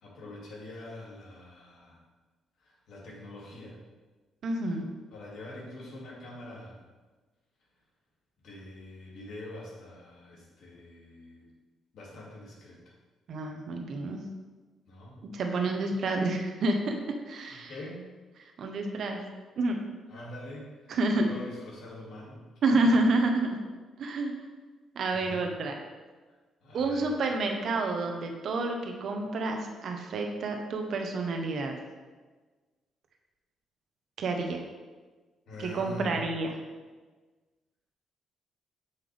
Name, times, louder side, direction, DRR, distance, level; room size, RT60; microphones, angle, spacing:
voice 1, 0.0-2.0 2.6-3.8 5.1-6.8 8.4-11.5 11.9-12.9 14.9-15.2 17.5-18.1 20.1-22.4 22.9-23.0 25.1-25.5 26.6-27.1 35.5-36.2, left 1 dB, 70° left, -4 dB, 2.4 m, -44 dB
voice 2, 4.4-4.9 13.3-14.2 15.3-17.0 17.3-17.7 18.6-19.2 19.6-19.8 20.9-21.3 22.6-23.5 24.0-24.3 24.9-25.7 26.7-31.8 34.2-34.6 35.6-36.5, right 2 dB, 65° right, 3 dB, 1.0 m, -29 dB
7.8 x 5.8 x 3.4 m, 1.3 s
cardioid pair, 90°, 0 cm